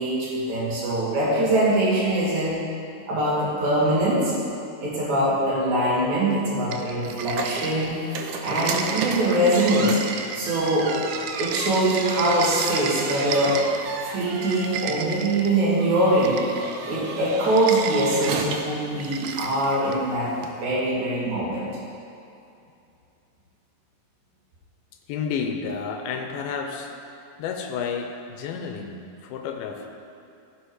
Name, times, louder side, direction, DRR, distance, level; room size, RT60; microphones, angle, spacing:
voice 1, 0.0-2.6 3.1-4.3 4.8-8.0 8.4-10.0 10.3-10.9 11.4-13.6 14.0-16.4 16.8-20.3 20.6-21.7, right 1 dB, 55° right, -6 dB, 3.3 m, -23 dB
sound 1, 6.7-8.0 8.3-13.9 14.3-15.6 16.2-16.8 17.5-18.3 19.0-20.0, right 7 dB, 90° right, 2.5 m, -34 dB
sound 2, 7.2-20.5, right 4 dB, 75° right, 1.8 m, -34 dB
voice 2, 25.1-26.9 27.4-29.9, left 6 dB, 85° left, 3 dB, 2.7 m, -31 dB
15.0 x 6.1 x 4.8 m, 2.7 s
omnidirectional pair, 4.2 m